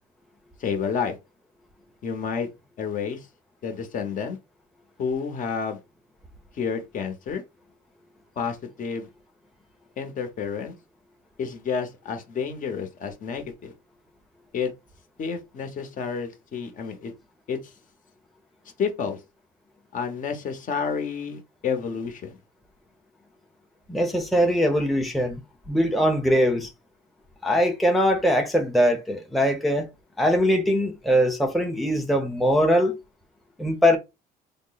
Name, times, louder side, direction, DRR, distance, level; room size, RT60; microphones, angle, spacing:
voice 1, 0.6-1.2 2.0-2.5 2.8-3.2 3.6-4.4 5.0-5.8 6.6-7.4 8.4-9.1 10.0-10.7 11.4-13.7 14.5-14.7 15.2-17.1 17.5-17.6 18.8-19.2 19.9-22.4, left 6 dB, 50° left, 1.0 m, -30 dB
voice 2, 23.9-25.4 25.7-26.7 27.4-29.9 30.2-33.0 33.6-34.0, equal, ahead, 0.7 m, -21 dB
3.6 x 2.1 x 3.9 m
cardioid pair, 110°, 17 cm